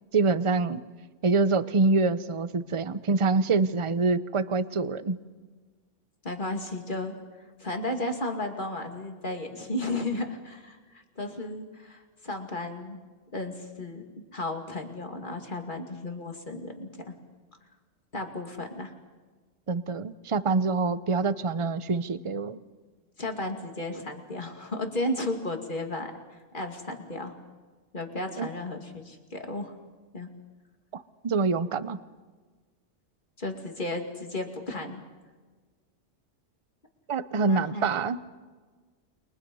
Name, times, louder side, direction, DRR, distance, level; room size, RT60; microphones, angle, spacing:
voice 1, 0.1-0.8 1.2-5.2 19.7-22.6 28.4-28.5 30.9-32.0 37.1-38.2, right 4 dB, 30° right, 13 dB, 0.7 m, -25 dB
voice 2, 6.2-7.1 7.6-10.8 11.2-13.0 13.3-14.0 14.3-17.1 18.1-18.9 23.2-26.1 26.5-27.3 27.9-29.7 30.1-30.3 33.4-35.0 37.5-37.9, left 1 dB, 40° left, 3 dB, 2.8 m, -34 dB
30.0 x 23.5 x 5.5 m, 1.4 s
omnidirectional pair, 1.3 m